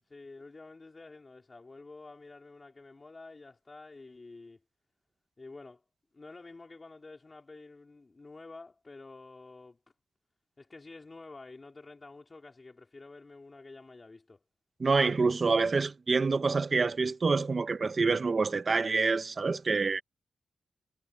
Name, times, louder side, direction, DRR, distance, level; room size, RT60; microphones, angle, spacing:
voice 1, 0.1-4.6 5.4-5.8 6.1-9.8 10.6-14.4, left 3 dB, 25° left, 3.6 m, -49 dB
voice 2, 14.8-20.0, right 4 dB, 35° right, 0.9 m, -27 dB
wide cardioid pair, 180°, 0 cm